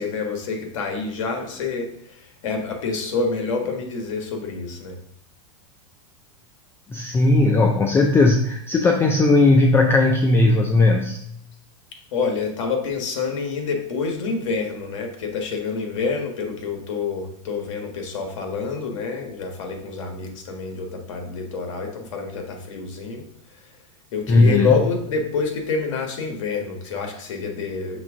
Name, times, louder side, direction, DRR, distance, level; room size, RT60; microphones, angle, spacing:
voice 1, 0.0-5.0 12.1-23.2 23.5-23.6 24.1-28.0, left 4 dB, 70° left, 3 dB, 1.6 m, -27 dB
voice 2, 6.9-11.2 24.3-24.7, left 2 dB, 15° left, 4 dB, 0.4 m, -17 dB
5.9 x 3.5 x 5.1 m, 0.72 s
supercardioid pair, 140°, 17 cm